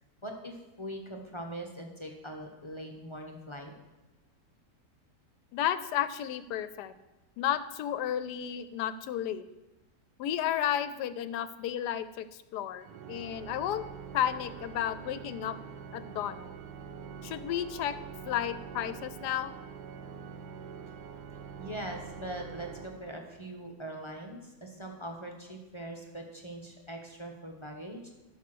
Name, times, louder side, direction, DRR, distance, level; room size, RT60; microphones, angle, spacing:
voice 1, 0.2-3.7 21.6-28.1, right 1 dB, 20° left, 2 dB, 0.9 m, -42 dB
voice 2, 5.5-6.9 7.4-9.4 10.2-12.3 12.5-13.8 14.1-15.6 15.9-16.4 17.2-18.0 18.2-19.5, left 10 dB, 75° left, 13 dB, 1.2 m, -32 dB
Organ, 12.8-23.6, right 6 dB, 85° right, 1.3 m, -45 dB
12.5 x 5.8 x 6.1 m, 1.1 s
omnidirectional pair, 1.8 m